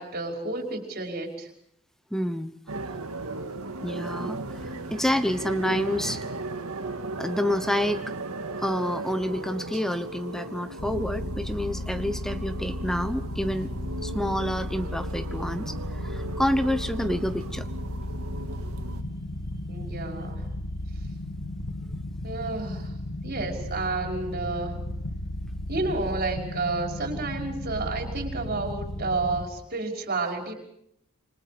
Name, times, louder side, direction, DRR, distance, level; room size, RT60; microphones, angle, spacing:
voice 1, 0.0-1.5 19.7-20.5 22.2-22.9 23.2-24.8 25.7-30.5, right 3 dB, 45° right, 2 dB, 5.6 m, -30 dB
voice 2, 2.1-2.6 3.8-6.2 7.2-8.0 8.6-13.7 14.0-17.7, equal, ahead, 10 dB, 1.0 m, -28 dB
sound 1, 2.7-19.0, right 2 dB, 80° right, 1.9 m, -36 dB
sound 2, 10.8-29.5, left 1 dB, 85° left, 1.8 m, -34 dB
27.5 x 25.5 x 5.2 m, 0.74 s
head